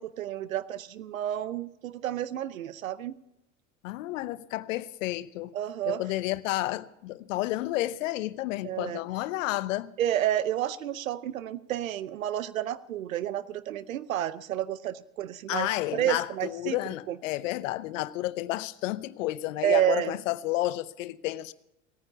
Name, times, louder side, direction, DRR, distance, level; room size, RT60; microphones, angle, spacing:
voice 1, 0.0-3.1 5.5-6.0 8.6-9.0 10.0-16.8 17.1-17.2 19.6-20.1, right 11 dB, 85° right, 0.8 m, -30 dB
voice 2, 3.8-5.5 5.9-9.9 15.5-21.5, left 16 dB, 70° left, 0.8 m, -31 dB
17.5 x 9.7 x 6.9 m
hypercardioid pair, 75°, 40 cm